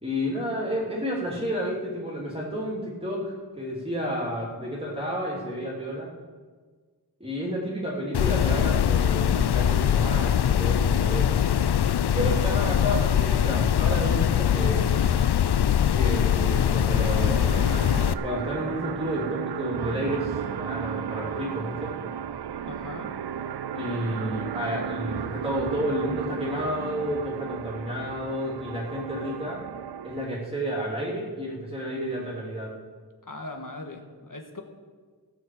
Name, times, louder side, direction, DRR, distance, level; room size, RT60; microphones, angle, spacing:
voice 1, 0.0-6.1 7.2-11.4 12.2-14.9 15.9-17.6 18.2-22.0 23.7-29.6 30.0-32.7, equal, 15° right, -5 dB, 2.9 m, -31 dB
sound 1, 8.1-18.1, left 9 dB, 85° left, 0.5 m, -22 dB
sound 2, 16.9-30.3, right 8 dB, 85° right, 0.5 m, -34 dB
voice 2, 22.7-23.1 33.2-34.6, left 2 dB, 55° left, 3 dB, 1.6 m, -39 dB
16.0 x 6.6 x 7.7 m, 1.5 s
wide cardioid pair, 60°, 39 cm